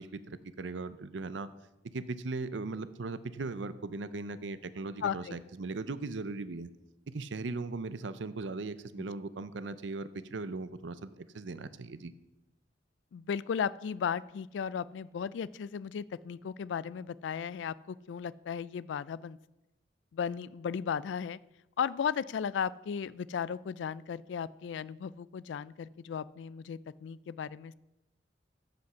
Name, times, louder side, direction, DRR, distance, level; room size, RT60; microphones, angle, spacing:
voice 1, 0.0-1.5 1.9-6.7 7.1-12.1, right 3 dB, 75° right, 14 dB, 0.6 m, -38 dB
voice 2, 5.0-5.4 13.1-19.4 20.1-21.4 21.8-27.7, left 7 dB, 75° left, 19 dB, 0.3 m, -35 dB
14.0 x 5.1 x 5.7 m, 0.97 s
head